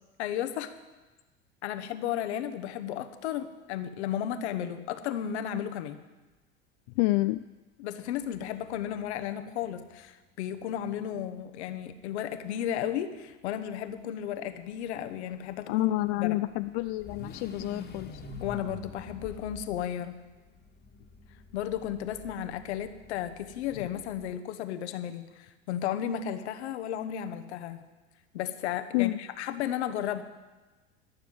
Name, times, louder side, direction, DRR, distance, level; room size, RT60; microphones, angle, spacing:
voice 1, 0.2-0.7 1.6-6.0 7.8-15.9 16.2-16.4 18.4-20.2 21.5-27.8 28.3-30.2, left 10 dB, 70° left, 9 dB, 1.1 m, -34 dB
voice 2, 7.0-7.4 15.7-18.2 23.8-23.9 28.9-29.2, left 19 dB, 55° left, 12 dB, 0.4 m, -28 dB
sound 1, 8.3-8.4 8.7-8.8 10.5-13.1 15.3-24.3, left 3 dB, 30° left, 1.6 m, -47 dB
13.0 x 6.8 x 9.3 m, 1.2 s
hypercardioid pair, 80°, 35 cm